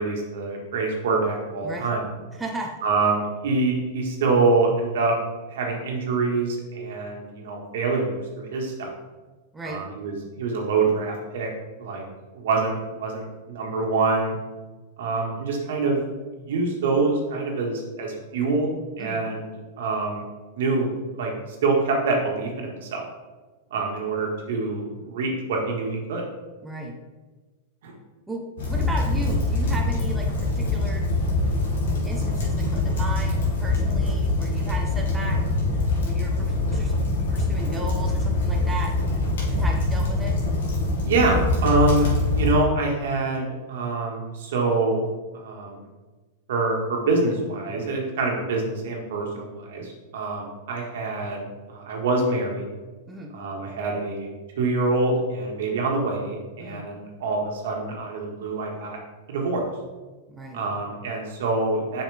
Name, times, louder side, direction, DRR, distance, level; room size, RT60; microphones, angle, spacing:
voice 1, 0.0-2.1 2.8-5.1 5.5-8.9 9.7-11.5 11.8-12.1 12.4-14.3 15.0-16.0 16.5-19.5 19.8-20.2 20.6-20.9 21.1-21.3 21.6-23.0 23.7-26.2 27.8-27.9 41.1-45.0 45.3-45.8 46.5-51.4 51.7-52.6 53.3-54.3 54.6-59.0 59.3-59.6 60.5-62.0, right 3 dB, 75° right, 0 dB, 1.8 m, -25 dB
voice 2, 2.3-2.7 9.5-9.8 19.0-19.2 26.6-27.0 28.3-31.0 32.0-35.4 35.7-36.9 37.3-38.9 39.5-40.4 53.1-53.3 56.6-56.8 60.3-60.6, right 2 dB, 10° right, -1 dB, 0.9 m, -35 dB
sound 1, 28.6-42.5, left 2 dB, 85° left, 2.0 m, -24 dB
7.1 x 5.6 x 3.5 m, 1.3 s
supercardioid pair, 135°, 0 cm